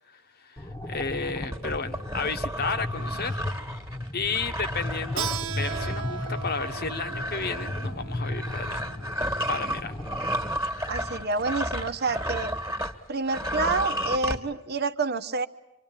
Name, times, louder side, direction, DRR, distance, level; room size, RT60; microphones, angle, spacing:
voice 1, 0.1-3.4 4.1-8.8 9.5-9.9, left 4 dB, 50° left, 8 dB, 1.2 m, -33 dB
sound 1, 0.6-10.6, left 1 dB, 15° left, 1.3 m, -35 dB
sound 2, 1.5-13.0 13.3-14.4, equal, 15° right, 1.8 m, -33 dB
Keyboard (musical), 5.2-10.4, right 6 dB, 75° right, 1.3 m, -38 dB
voice 2, 10.9-12.5 13.1-15.5, right 3 dB, 50° right, 10 dB, 1.0 m, -28 dB
27.0 x 25.0 x 8.9 m, 0.94 s
head